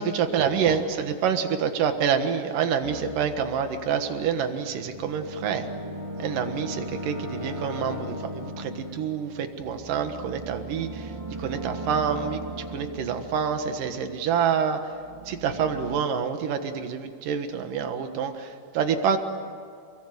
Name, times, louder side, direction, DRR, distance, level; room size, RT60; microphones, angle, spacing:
voice 1, 0.0-5.7 6.2-11.1 11.4-12.4 12.7-14.8 15.3-19.2, right 7 dB, 80° right, 7 dB, 3.2 m, -27 dB
sound 1, 2.8-14.5 14.9-16.0, right 1 dB, 15° right, 1.3 m, -38 dB
29.0 x 22.5 x 8.0 m, 2.4 s
omnidirectional pair, 3.7 m